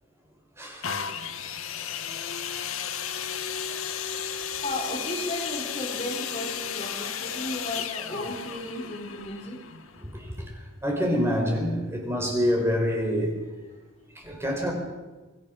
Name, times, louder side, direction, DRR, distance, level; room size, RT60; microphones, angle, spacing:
voice 1, 0.6-0.9 3.7-3.8 4.2-4.3 10.0-10.5 10.8-13.4 14.2-14.7, equal, 10° right, 4.0 m, -27 dB
sound 1, 0.8-10.5 11.2-11.3, left 8 dB, 85° left, 1.4 m, -34 dB
voice 2, 4.6-9.6, left 1 dB, 30° left, 4.0 m, -34 dB
26.5 x 20.0 x 6.2 m
head